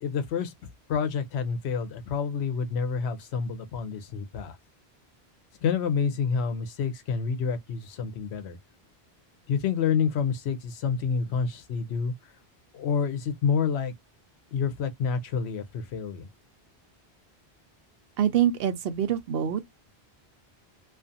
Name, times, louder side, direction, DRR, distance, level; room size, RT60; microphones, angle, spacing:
voice 1, 0.0-0.5 0.9-4.6 5.6-8.6 9.5-12.1 12.7-13.9 14.5-16.3, left 6 dB, 90° left, 0.9 m, -28 dB
voice 2, 18.2-19.7, right 10 dB, 70° right, 0.8 m, -25 dB
2.4 x 2.4 x 2.5 m
omnidirectional pair, 1.1 m